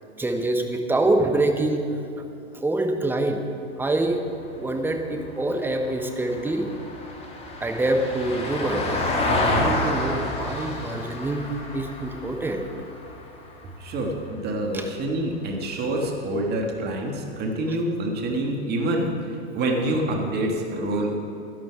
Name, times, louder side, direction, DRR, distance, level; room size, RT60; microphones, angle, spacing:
voice 1, 0.2-1.9 2.5-3.4 3.8-4.2 4.6-6.7 7.6-11.4 11.7-12.6 14.7-14.8, right 2 dB, 5° right, 4 dB, 1.0 m, -25 dB
Vehicle, 4.0-14.4 16.7-16.8, left 2 dB, 20° left, 1.8 m, -30 dB
voice 2, 13.8-19.1 19.5-21.2, right 1 dB, 30° right, 1 dB, 1.8 m, -26 dB
11.5 x 11.0 x 4.8 m, 2.8 s
hypercardioid pair, 115°, 33 cm